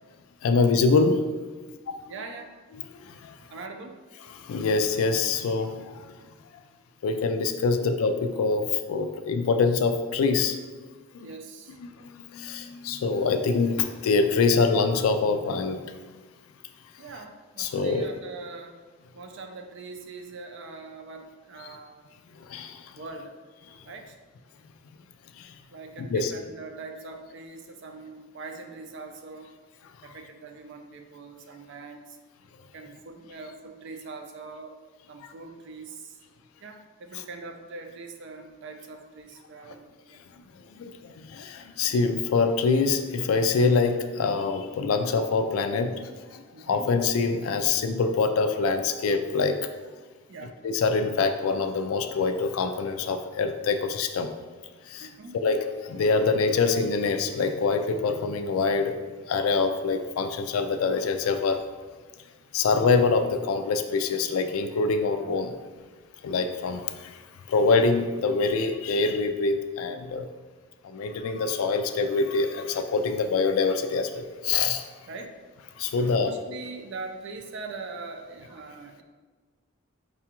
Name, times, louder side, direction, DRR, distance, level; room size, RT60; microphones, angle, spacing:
voice 1, 0.4-1.2 1.9-2.0 2.8-3.4 4.3-6.1 7.0-10.6 11.1-11.3 11.8-15.8 17.6-18.1 21.6-21.7 22.5-22.9 25.4-25.5 26.0-26.3 30.1-30.2 35.2-35.3 37.1-37.2 40.7-49.6 50.6-54.3 54.9-59.0 59.3-61.6 62.5-65.5 66.2-67.2 67.5-70.3 70.8-74.8 75.8-76.3, left 4 dB, 85° left, 7 dB, 0.3 m, -25 dB
voice 2, 2.1-2.5 3.5-4.0 11.2-11.8 17.0-18.8 19.1-22.0 22.9-23.3 23.8-24.2 25.7-29.5 30.0-32.2 32.7-34.7 35.1-36.2 36.6-40.2 46.5-46.9 50.3-50.6 55.0-55.4 75.1-75.4 76.0-79.0, right 3 dB, 60° right, 5 dB, 0.4 m, -42 dB
4.8 x 2.3 x 2.9 m, 1.4 s
head